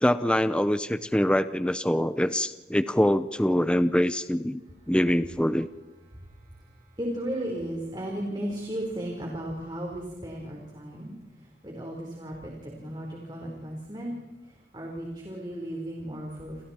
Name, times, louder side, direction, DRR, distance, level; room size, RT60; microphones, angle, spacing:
voice 1, 0.0-4.6 4.9-5.7, equal, 5° left, 12 dB, 0.6 m, -24 dB
voice 2, 7.0-11.1 11.6-14.2 14.7-16.6, right 1 dB, 25° right, -1 dB, 4.1 m, -35 dB
29.5 x 28.0 x 4.4 m, 1.3 s
head